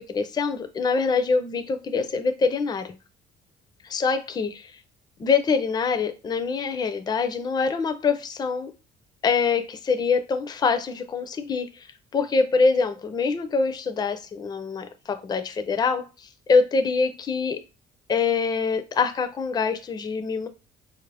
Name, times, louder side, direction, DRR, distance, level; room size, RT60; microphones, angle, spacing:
voice 1, 0.0-2.9 3.8-4.6 5.2-8.7 9.2-17.6 18.1-20.5, left 4 dB, 25° left, 0.4 m, -24 dB
4.0 x 2.5 x 3.3 m
cardioid pair, 110°, 17 cm